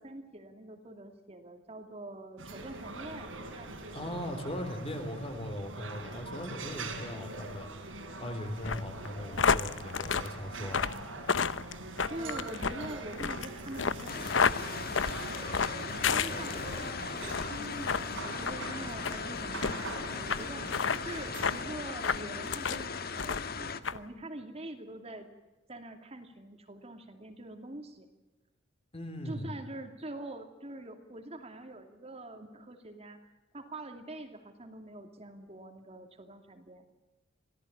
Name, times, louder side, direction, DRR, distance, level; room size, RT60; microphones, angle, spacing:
voice 1, 0.0-4.0 12.1-15.2 16.0-25.3 25.7-28.1 29.2-33.2 33.5-36.9, right 1 dB, 30° right, 5 dB, 2.6 m, -45 dB
sound 1, 2.4-21.7, right 2 dB, 85° right, 4.9 m, -43 dB
voice 2, 3.9-7.7 8.2-10.9 28.9-29.6, equal, 30° left, 6 dB, 4.0 m, -39 dB
sound 2, 8.6-16.9 17.2-17.5 17.9-18.0 18.4-18.6 19.0-19.2 19.6-19.7 20.3-20.4 20.7-21.0 21.4-21.6 22.0-22.8 23.2-23.5 23.8-24.0, left 5 dB, 70° left, 0.9 m, -30 dB
sound 3, 14.1-23.8, left 5 dB, 50° left, 1.4 m, -38 dB
26.5 x 17.5 x 8.7 m, 1.0 s
head